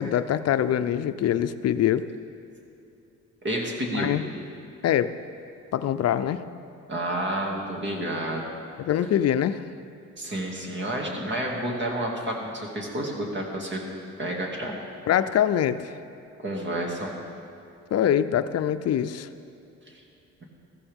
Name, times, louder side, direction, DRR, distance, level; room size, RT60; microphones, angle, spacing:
voice 1, 0.0-2.1 3.9-4.2 4.8-5.1 5.7-6.4 8.8-9.6 15.1-15.9 17.9-19.3, left 10 dB, 55° left, 12 dB, 0.6 m, -24 dB
voice 2, 3.4-4.1 6.9-8.4 10.2-13.8 14.2-14.8 16.4-17.2, right 1 dB, 40° right, -1 dB, 2.4 m, -30 dB
14.5 x 14.0 x 3.6 m, 2.7 s
cardioid pair, 90°, 30 cm